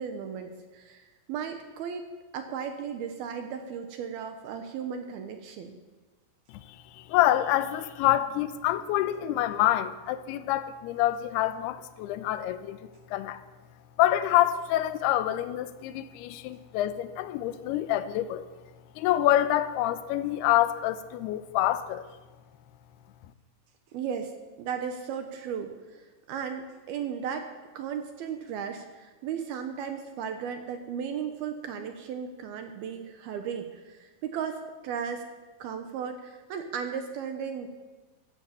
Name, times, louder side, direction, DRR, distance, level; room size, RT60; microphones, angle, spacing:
voice 1, 0.0-2.0 2.3-5.8 23.9-24.3 24.6-27.5 27.7-35.2 35.6-37.7, right 7 dB, 70° right, 6 dB, 2.6 m, -35 dB
voice 2, 6.5-12.8 13.1-13.4 14.0-18.5 19.0-22.1, left 13 dB, 80° left, 12 dB, 2.5 m, -26 dB
14.5 x 12.5 x 7.5 m, 1.2 s
omnidirectional pair, 5.1 m